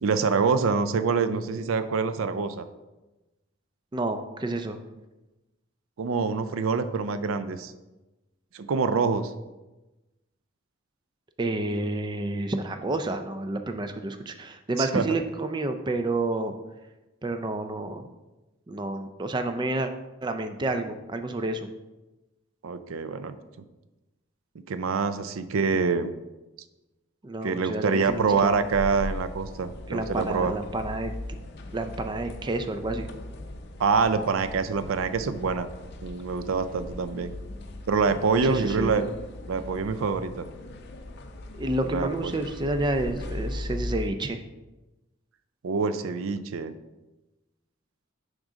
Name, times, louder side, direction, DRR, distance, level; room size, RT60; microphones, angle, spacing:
voice 1, 0.0-2.7 6.0-7.7 8.5-9.3 14.8-15.0 22.6-23.4 24.7-26.1 27.4-30.5 33.8-35.7 36.0-37.3 37.9-39.0 39.5-40.5 41.9-42.3 45.6-46.7, right 5 dB, 85° right, 11 dB, 0.4 m, -26 dB
voice 2, 3.9-4.8 11.4-16.5 17.2-18.0 18.7-19.9 20.2-21.7 27.2-28.5 29.9-31.1 31.7-33.1 38.4-39.1 41.5-44.4, right 2 dB, 20° right, 7 dB, 0.4 m, -29 dB
sound 1, 28.0-44.1, left 1 dB, 55° left, 0.6 m, -39 dB
6.2 x 3.7 x 5.0 m, 1.1 s
head